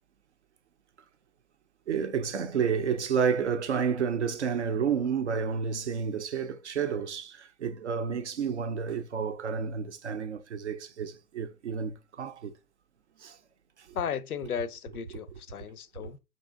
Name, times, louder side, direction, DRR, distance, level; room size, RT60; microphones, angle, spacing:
voice 1, 1.9-12.6 13.2-13.4 13.8-13.9 16.0-16.1, right 6 dB, 45° right, 0.6 m, -30 dB
voice 2, 13.9-16.2, left 7 dB, 65° left, 0.6 m, -35 dB
5.3 x 2.8 x 3.4 m
figure-of-eight pair, 130°, 47 cm